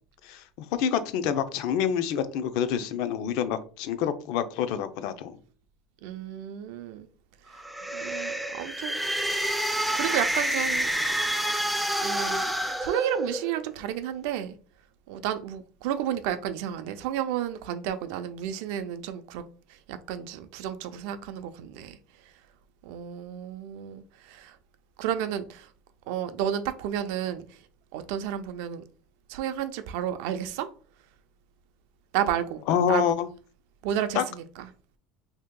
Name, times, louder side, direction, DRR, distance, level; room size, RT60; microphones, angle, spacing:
voice 1, 0.2-5.4 32.7-33.3 34.1-34.2, left 8 dB, 65° left, 0.4 m, -27 dB
voice 2, 6.0-7.1 7.9-9.0 9.5-9.7 9.9-10.9 12.0-14.6 15.1-19.4 19.9-22.0 22.8-24.6 25.0-25.7 26.1-27.4 27.9-28.8 29.3-30.7 32.1-32.6 32.9-33.1 33.8-34.4, right 10 dB, 70° right, 0.4 m, -32 dB
sound 1, 7.5-13.6, right 1 dB, ahead, 0.3 m, -28 dB
2.8 x 2.8 x 3.7 m
cardioid pair, 150°, 0 cm